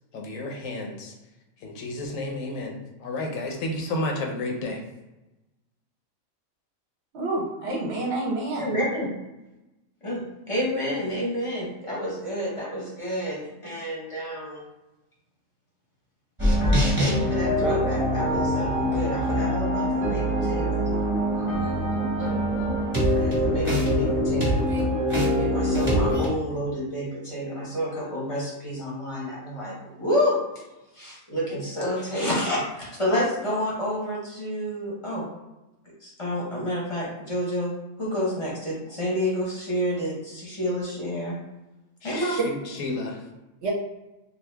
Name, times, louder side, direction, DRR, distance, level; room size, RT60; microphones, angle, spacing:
voice 1, 0.1-1.1 1.6-2.7 3.0-4.8 42.0-43.2, left 2 dB, 75° left, 1 dB, 1.0 m, -31 dB
voice 2, 7.1-8.7 43.6-43.7, right 2 dB, 60° right, -2 dB, 0.8 m, -28 dB
voice 3, 8.6-9.1 10.0-14.6 16.6-24.6 25.3-30.4 30.9-35.3 36.0-37.7 38.0-41.4 42.0-42.4, equal, 30° left, -5 dB, 0.7 m, -29 dB
sound 1, 16.4-26.3, equal, 10° right, 0.9 m, -24 dB
2.8 x 2.5 x 3.3 m, 1.0 s
omnidirectional pair, 1.4 m